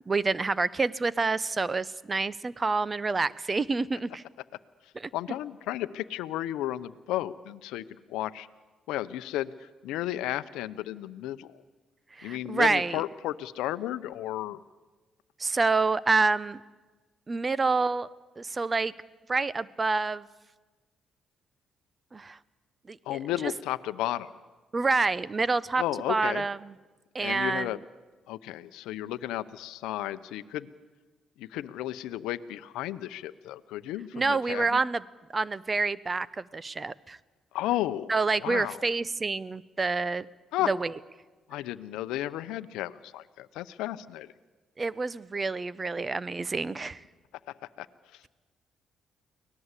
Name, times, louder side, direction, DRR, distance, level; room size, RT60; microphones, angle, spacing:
voice 1, 0.1-4.2 5.0-5.1 12.2-13.0 15.4-16.6 17.3-18.1 18.4-18.9 19.3-20.3 22.1-22.4 22.9-23.2 24.7-25.8 26.1-26.7 27.1-27.7 34.1-35.0 35.3-37.2 38.1-40.3 40.7-40.9 44.8-47.0, right 3 dB, 30° right, 20 dB, 0.8 m, -27 dB
voice 2, 5.1-8.5 8.9-11.6 12.2-14.6 23.1-24.3 25.8-26.4 27.2-27.8 28.3-30.7 31.4-34.8 37.5-38.1 38.4-38.8 40.5-40.7 41.5-44.3 47.8-47.9 48.1-48.2, left 14 dB, 85° left, 13 dB, 0.7 m, -33 dB
24.0 x 18.0 x 8.2 m, 1.3 s
supercardioid pair, 65°, 0 cm